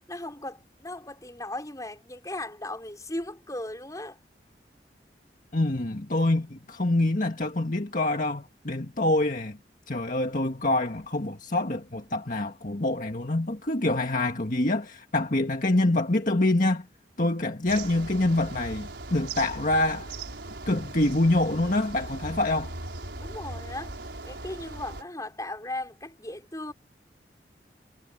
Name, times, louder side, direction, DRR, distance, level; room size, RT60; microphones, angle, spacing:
voice 1, 0.1-4.2 23.2-23.9 24.2-26.7, left 1 dB, 20° left, 5.8 m, -37 dB
voice 2, 5.5-9.6 9.9-16.8 17.2-20.1 20.7-22.7, left 2 dB, 50° left, 1.9 m, -26 dB
sound 1, 17.7-25.0, right 2 dB, 85° right, 4.8 m, -39 dB
head